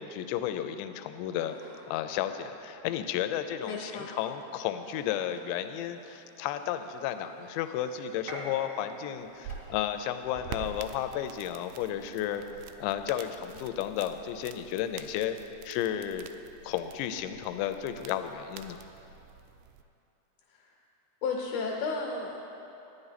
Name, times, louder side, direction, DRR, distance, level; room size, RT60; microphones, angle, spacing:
voice 1, 0.0-12.4 12.8-15.4 15.7-16.3 16.6-18.8, left 10 dB, 85° left, 9 dB, 2.8 m, -33 dB
sound 1, 1.2-1.9 2.3-3.7 4.7-5.5 5.8-5.9 6.6-6.7 7.1-7.2 7.5-8.2 9.3-9.9 10.9-11.4 12.1-12.7, equal, 25° right, 0.6 m, -56 dB
voice 2, 3.6-4.1 20.5-20.7 21.2-22.5, left 4 dB, 70° left, -2 dB, 2.5 m, -33 dB
Gunshot gunfire, 5.5-15.5, right 1 dB, 50° right, 0.9 m, -51 dB
sound 2, 9.2-19.8, right 7 dB, 85° right, 2.4 m, -47 dB
13.5 x 9.9 x 4.1 m, 2.9 s
omnidirectional pair, 5.1 m